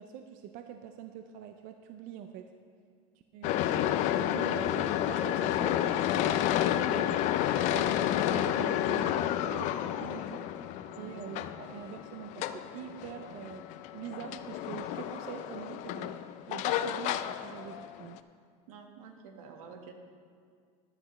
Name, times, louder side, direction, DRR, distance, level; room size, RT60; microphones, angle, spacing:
voice 1, 0.0-2.5 3.3-3.9 4.1-7.2 7.7-10.5 11.0-13.7 13.9-16.2 16.5-18.2, right 9 dB, 50° right, 6 dB, 0.6 m, -44 dB
sound 1, 3.4-18.2, left 12 dB, 45° left, 0.4 m, -31 dB
voice 2, 18.7-19.9, right 6 dB, 85° right, 4 dB, 1.5 m, -49 dB
14.0 x 11.0 x 3.1 m, 2.1 s
supercardioid pair, 150°, 18 cm